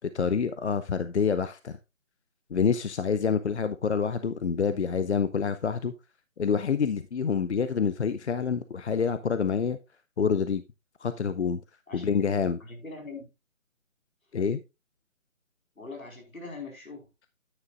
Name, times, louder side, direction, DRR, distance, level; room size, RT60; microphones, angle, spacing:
voice 1, 0.1-1.7 2.5-5.9 6.4-9.8 10.2-10.6 11.0-11.6 11.9-12.6 14.3-14.6, left 6 dB, 55° left, 12 dB, 0.6 m, -27 dB
voice 2, 11.9-12.3 12.6-13.3 15.8-17.0, left 3 dB, 85° left, 2 dB, 4.7 m, -42 dB
9.7 x 9.0 x 2.5 m, 0.26 s
figure-of-eight pair, 160°, 40 cm